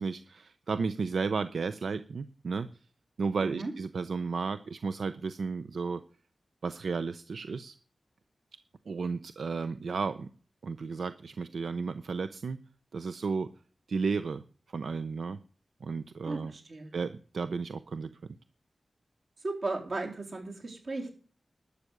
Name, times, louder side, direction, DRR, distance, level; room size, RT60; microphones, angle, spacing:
voice 1, 0.0-2.7 3.2-6.0 6.6-7.7 8.9-10.3 10.6-12.6 12.9-13.5 13.9-15.4 15.8-16.5 16.9-18.2, right 4 dB, 85° right, 12 dB, 0.6 m, -33 dB
voice 2, 16.3-16.9 19.4-21.1, right 2 dB, 55° right, 1 dB, 3.9 m, -35 dB
12.0 x 8.3 x 6.6 m, 0.41 s
wide cardioid pair, 115°, 0 cm